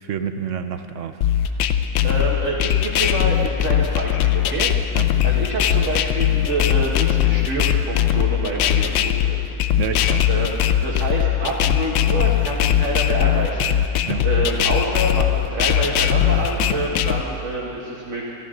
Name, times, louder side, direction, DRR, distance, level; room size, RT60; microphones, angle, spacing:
voice 1, 0.0-1.2 4.9-5.1 9.8-10.3 14.1-14.2, right 8 dB, 70° right, 9 dB, 0.7 m, -28 dB
sound 1, 1.2-17.2, left 11 dB, 90° left, 1.4 m, -20 dB
voice 2, 2.0-9.6 10.3-10.5 10.8-18.3, right 2 dB, 45° right, -5 dB, 1.8 m, -27 dB
25.5 x 13.5 x 3.8 m, 2.9 s
omnidirectional pair, 2.0 m